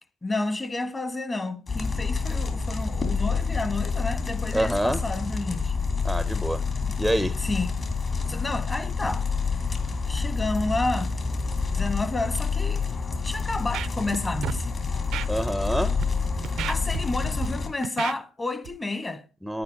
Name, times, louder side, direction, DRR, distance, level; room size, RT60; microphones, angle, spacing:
voice 1, 0.2-5.8 6.8-7.0 7.4-7.7 8.3-9.2 10.1-11.1 11.7-12.8 13.2-14.7 16.7-19.2, left 2 dB, 25° left, 1.4 m, -30 dB
sound 1, 1.7-17.7, left 4 dB, 40° left, 2.9 m, -28 dB
voice 2, 4.5-5.0 6.0-6.6 7.0-7.4 15.3-16.0 19.4-19.6, equal, ahead, 0.7 m, -26 dB
Scratching (performance technique), 13.5-14.2 14.4-14.6 15.1-15.3 15.8-16.0 16.4-17.5 17.8-18.1 18.6-18.8, right 12 dB, 70° right, 0.6 m, -33 dB
9.6 x 9.5 x 5.4 m
supercardioid pair, 70°, 0 cm